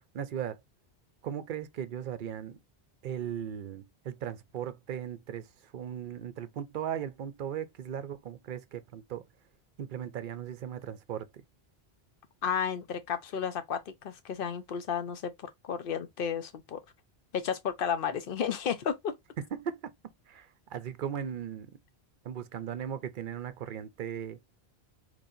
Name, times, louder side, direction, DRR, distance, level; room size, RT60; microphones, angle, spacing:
voice 1, 0.1-0.6 1.2-2.6 3.0-5.5 5.7-9.2 9.8-11.3 19.5-19.8 20.3-21.7 22.2-24.4, right 9 dB, 60° right, 0.6 m, -37 dB
voice 2, 12.4-15.3 15.6-16.8 17.3-19.1, left 7 dB, 60° left, 0.8 m, -32 dB
4.0 x 3.1 x 2.6 m
omnidirectional pair, 1.1 m